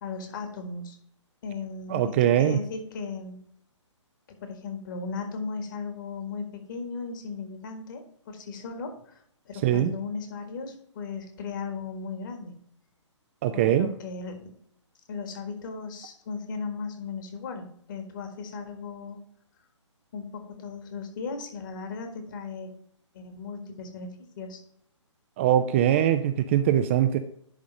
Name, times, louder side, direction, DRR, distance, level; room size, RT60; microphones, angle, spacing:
voice 1, 0.0-1.0 1.4-3.5 4.3-12.6 13.5-14.5 15.1-19.2 20.1-22.7 23.1-24.6, left 4 dB, 40° left, 6 dB, 1.7 m, -37 dB
voice 2, 1.9-2.6 9.6-9.9 13.4-13.9 25.4-27.2, right 11 dB, 25° right, 9 dB, 0.4 m, -22 dB
10.5 x 3.7 x 5.2 m, 0.66 s
figure-of-eight pair, 130°, 16 cm